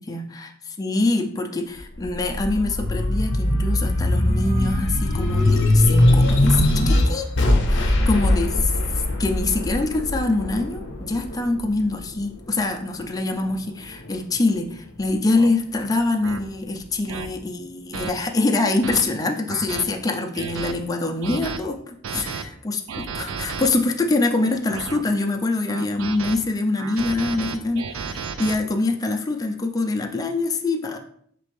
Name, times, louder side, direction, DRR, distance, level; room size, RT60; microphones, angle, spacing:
voice 1, 0.0-22.4 22.7-31.0, left 2 dB, 20° left, 3 dB, 0.4 m, -24 dB
sound 1, 1.8-12.6 13.1-14.2, left 1 dB, 60° left, 0.7 m, -21 dB
sound 2, 14.5-14.7 15.3-15.5 16.2-16.4 17.1-17.3 17.9-18.1 18.6-19.0 19.5-19.9 20.4-20.7 21.2-21.6 22.0-22.4 22.9-23.7 24.3-25.0 25.7-26.4 26.8-28.6, right 5 dB, 70° right, 0.4 m, -32 dB
4.1 x 3.4 x 3.2 m, 0.64 s
head